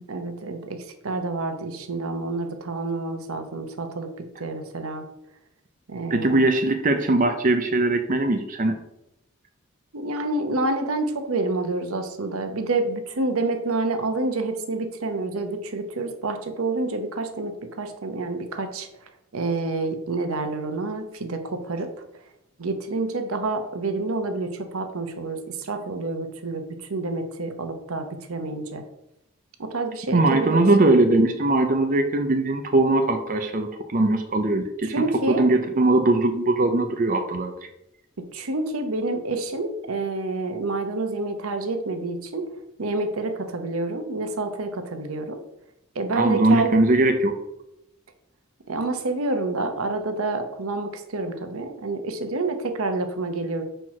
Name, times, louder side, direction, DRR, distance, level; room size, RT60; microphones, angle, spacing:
voice 1, 0.1-0.8 1.0-4.1 4.4-5.1 5.9-6.5 9.9-18.9 19.3-21.9 22.6-28.8 29.6-30.7 34.8-35.5 38.3-42.5 42.8-45.4 45.9-46.9 48.7-53.6, right 2 dB, 90° right, 7 dB, 0.9 m, -28 dB
voice 2, 6.1-8.7 30.1-37.5 46.2-47.3, right 2 dB, 40° right, 6 dB, 0.6 m, -20 dB
4.5 x 4.5 x 5.8 m, 0.84 s
head